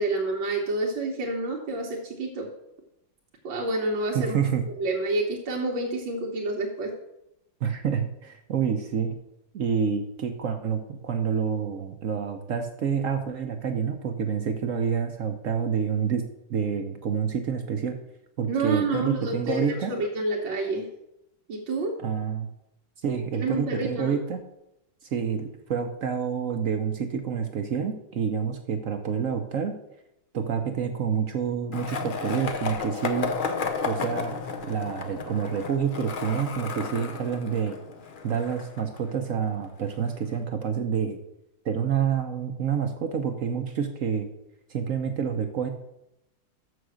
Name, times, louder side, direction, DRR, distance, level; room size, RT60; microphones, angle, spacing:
voice 1, 0.0-2.5 3.4-4.4 4.8-6.9 18.5-20.9 21.5-22.0 23.3-24.2, right 2 dB, 85° right, -2 dB, 1.9 m, -28 dB
voice 2, 4.1-4.6 7.6-9.2 9.5-18.0 18.4-19.9 22.0-22.5 23.0-24.4 25.0-29.7 30.3-33.3 33.8-34.4 34.6-37.8 38.2-41.2 41.6-44.3 44.7-45.7, right 7 dB, 60° right, 6 dB, 0.9 m, -28 dB
Skateboard, 31.7-39.7, left 5 dB, 55° left, 0.5 m, -33 dB
6.9 x 6.3 x 6.3 m, 0.86 s
omnidirectional pair, 2.0 m